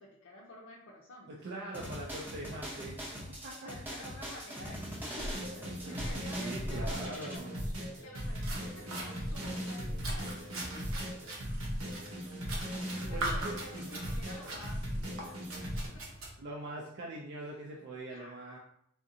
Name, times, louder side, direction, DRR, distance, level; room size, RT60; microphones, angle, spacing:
voice 1, 0.0-1.4 1.7-1.9 3.5-7.0 8.0-11.3 12.6-14.8 15.9-16.0 18.1-18.6, left 1 dB, 80° left, -4 dB, 0.5 m, -51 dB
voice 2, 1.3-3.0 3.4-3.5 5.4-7.7 13.1-13.9 16.4-18.6, right 2 dB, 55° right, -2 dB, 0.4 m, -43 dB
sound 1, 1.7-7.4, equal, 10° right, 0.7 m, -42 dB
sound 2, 5.2-15.9, equal, 90° right, 1.2 m, -38 dB
sound 3, 8.1-16.3, right 1 dB, 70° right, 0.8 m, -42 dB
3.6 x 2.5 x 2.7 m, 0.72 s
head